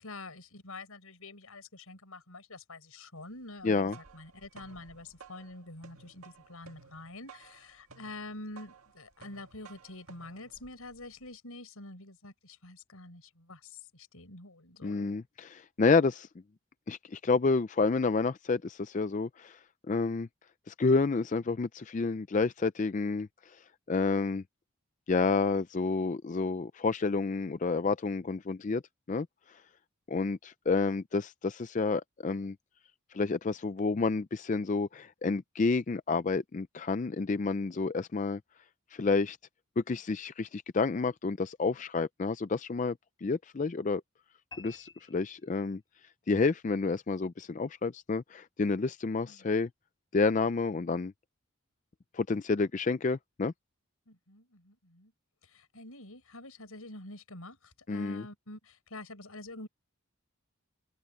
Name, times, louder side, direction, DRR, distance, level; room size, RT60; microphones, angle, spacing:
voice 1, 0.0-15.1 49.2-49.6 54.1-55.1 55.4-59.7, left 2 dB, 85° left, 6.1 m, -47 dB
voice 2, 3.6-4.0 14.8-16.3 16.9-19.6 19.9-20.3 20.7-24.4 25.1-28.8 29.1-29.6 30.1-32.6 33.1-38.4 38.9-39.4 39.8-44.0 44.6-45.8 46.3-49.7 50.1-51.1 52.1-53.5 57.9-58.2, left 4 dB, 35° left, 0.4 m, -29 dB
sound 1, 3.6-11.3, right 5 dB, 80° right, 2.2 m, -56 dB
sound 2, 44.5-46.0, left 5 dB, 20° left, 5.9 m, -52 dB
head